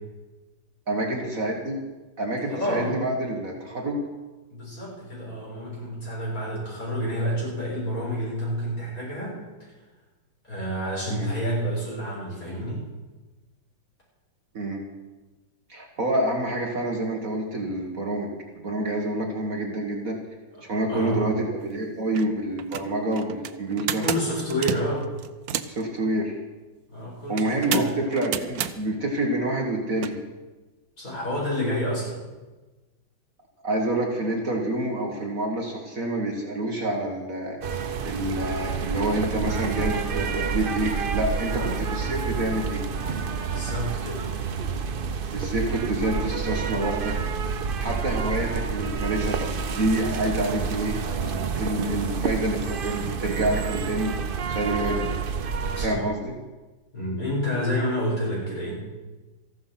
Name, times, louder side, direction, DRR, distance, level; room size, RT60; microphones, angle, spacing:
voice 1, 0.9-1.8 2.2-4.0 11.1-11.3 14.5-14.8 15.7-20.2 20.6-24.0 25.7-26.4 27.3-30.2 33.6-37.6 38.0-42.8 45.3-47.1 47.8-54.1 54.5-55.1 55.8-56.4, right 1 dB, 45° right, 1 dB, 1.9 m, -27 dB
voice 2, 2.5-3.0 4.5-9.7 10.5-12.8 20.5-20.6 20.9-21.3 24.0-25.1 26.9-27.9 31.0-32.2 41.4-41.8 43.4-44.3 55.8-56.1 56.9-58.8, equal, 45° left, -6 dB, 7.0 m, -29 dB
sound 1, 21.6-21.7 22.1-22.3 22.6-25.8 27.4-28.7 30.0-30.1, right 9 dB, 65° right, 1.0 m, -30 dB
sound 2, 37.6-55.9, right 6 dB, 90° right, 0.4 m, -29 dB
14.5 x 12.0 x 5.8 m, 1.2 s
omnidirectional pair, 2.1 m